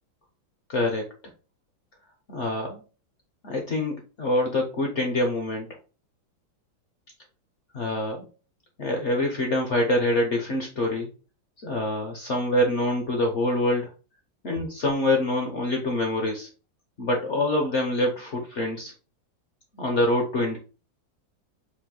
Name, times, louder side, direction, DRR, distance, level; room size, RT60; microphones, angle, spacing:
voice 1, 0.7-1.1 2.3-2.8 3.4-5.8 7.7-8.3 8.8-11.1 11.6-13.9 14.4-16.5 17.0-18.9 19.8-20.6, left 1 dB, 55° left, 2 dB, 0.8 m, -25 dB
4.5 x 2.6 x 3.8 m, 0.32 s
omnidirectional pair, 2.2 m